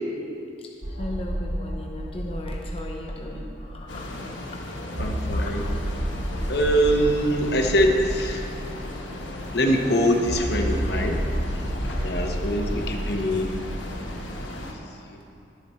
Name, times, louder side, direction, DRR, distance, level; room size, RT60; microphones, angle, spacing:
sound 1, 0.8-4.1 4.4-4.5 4.9-9.5 10.3-14.6, equal, 75° right, 1.2 m, -31 dB
voice 1, 0.9-4.1 11.6-12.2, left 1 dB, 30° left, -1 dB, 0.9 m, -37 dB
sound 2, 3.9-14.7, left 1 dB, 85° left, 1.3 m, -36 dB
voice 2, 5.0-5.7 6.5-8.5 9.5-11.2 11.5-11.6 12.0-13.5 14.7-15.2, equal, 60° left, 2 dB, 1.1 m, -23 dB
22.0 x 9.0 x 3.2 m, 2.7 s
head